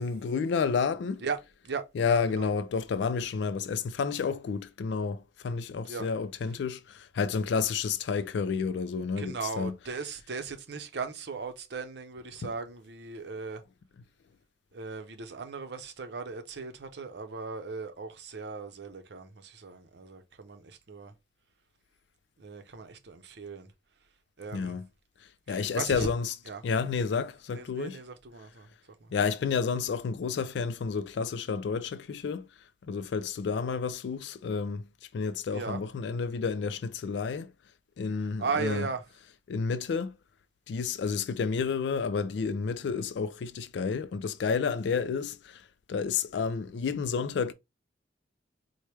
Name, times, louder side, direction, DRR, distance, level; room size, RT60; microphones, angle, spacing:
voice 1, 0.0-1.2 1.9-9.8 12.4-12.5 24.5-24.9 25.5-26.3 26.6-28.0 29.1-32.5 32.9-34.9 35.1-37.5 38.0-38.9 39.5-40.2 40.7-45.6 45.9-47.5, left 5 dB, 70° left, 0.3 m, -30 dB
voice 2, 9.2-13.6 14.7-21.1 22.4-23.7 24.4-24.8 25.5-26.1 26.5-26.6 27.5-28.7 29.0-29.1 35.5-35.8 38.4-39.0, right 4 dB, 65° right, 0.7 m, -37 dB
4.5 x 2.1 x 3.2 m
head